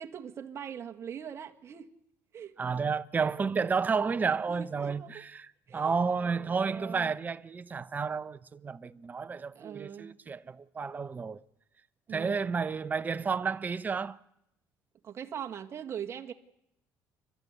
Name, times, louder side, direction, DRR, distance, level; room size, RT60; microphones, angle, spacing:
voice 1, 0.0-1.9 2.3-2.5 4.5-5.2 5.7-7.1 9.5-10.2 12.1-12.5 15.0-16.3, right 8 dB, 40° right, 1.7 m, -42 dB
voice 2, 2.6-11.4 12.1-14.2, right 5 dB, 25° right, 0.8 m, -31 dB
29.5 x 13.0 x 8.2 m
cardioid pair, 115°, 7 cm